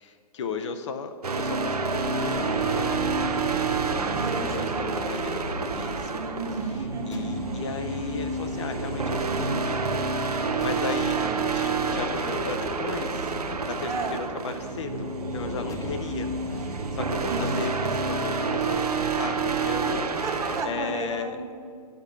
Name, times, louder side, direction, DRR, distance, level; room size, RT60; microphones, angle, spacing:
voice 1, 0.0-3.0 4.4-6.2 6.6-10.0 10.3-11.2 11.5-20.1 20.6-21.4, left 5 dB, 50° left, 7 dB, 0.6 m, -36 dB
sound 1, 1.2-20.6, right 4 dB, 75° right, 0.9 m, -28 dB
Breathing, 1.6-4.0 4.8-7.1 8.2-11.1 11.7-13.9 14.8-17.1, left 1 dB, 80° left, 0.9 m, -40 dB
voice 2, 4.0-5.3 6.1-7.8 11.1-11.5 13.9-14.2 17.3-17.7 19.8-21.5, right 3 dB, 15° right, 1 dB, 1.2 m, -33 dB
sound 2, 7.1-10.1 10.6-14.8 15.7-17.8, left 2 dB, 15° left, 0.8 m, -44 dB
10.5 x 5.9 x 5.9 m, 2.3 s
figure-of-eight pair, 110°, 20 cm